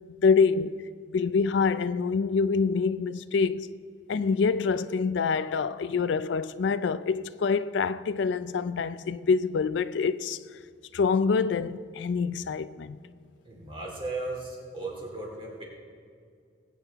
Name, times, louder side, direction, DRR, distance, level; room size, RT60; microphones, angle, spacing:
voice 1, 0.2-3.7 4.1-10.4 10.9-13.0, left 5 dB, 70° left, 0.4 m, -26 dB
voice 2, 13.4-15.6, right 2 dB, 25° right, 2.6 m, -36 dB
20.5 x 8.5 x 3.5 m
head